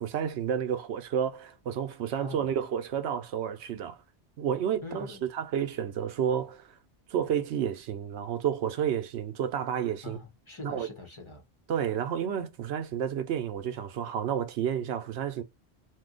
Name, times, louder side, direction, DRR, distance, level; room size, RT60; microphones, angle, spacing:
voice 1, 0.0-4.0 4.4-5.1 5.3-6.7 7.1-10.2 10.6-10.9 11.7-15.4, right 8 dB, 80° right, 0.9 m, -30 dB
voice 2, 2.2-2.6 4.8-5.3 10.0-11.4, left 3 dB, 30° left, 0.8 m, -43 dB
2.7 x 2.2 x 3.7 m
omnidirectional pair, 1.1 m